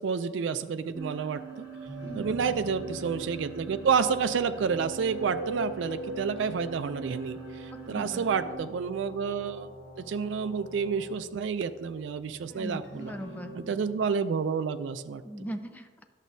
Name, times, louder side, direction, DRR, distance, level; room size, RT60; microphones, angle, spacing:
voice 1, 0.0-1.7 2.2-9.7 10.1-13.1 13.5-15.2, right 6 dB, 90° right, 10 dB, 0.4 m, -29 dB
sound 1, 0.9-8.5, right 3 dB, 10° right, 1.4 m, -41 dB
sound 2, 1.8-14.1, equal, 85° left, 1.4 m, -49 dB
voice 2, 2.0-2.6 7.7-8.3 12.5-13.5 15.2-16.0, equal, 10° left, 6 dB, 0.4 m, -40 dB
Brass instrument, 4.3-11.2, left 2 dB, 45° right, 2.2 m, -49 dB
11.0 x 7.2 x 2.7 m, 1.5 s
head